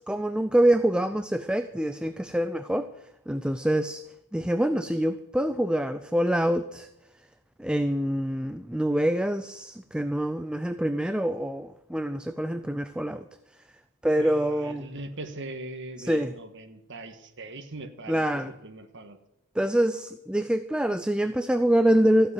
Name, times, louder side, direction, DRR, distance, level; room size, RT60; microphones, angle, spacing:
voice 1, 0.0-2.9 3.3-4.0 4.3-6.9 7.6-13.3 14.0-14.9 16.0-16.3 18.1-18.5 19.6-22.3, right 1 dB, 5° right, 10 dB, 0.4 m, -25 dB
voice 2, 14.2-18.3 18.6-19.2, right 2 dB, 55° right, 5 dB, 1.6 m, -40 dB
15.0 x 7.9 x 9.2 m, 0.91 s
head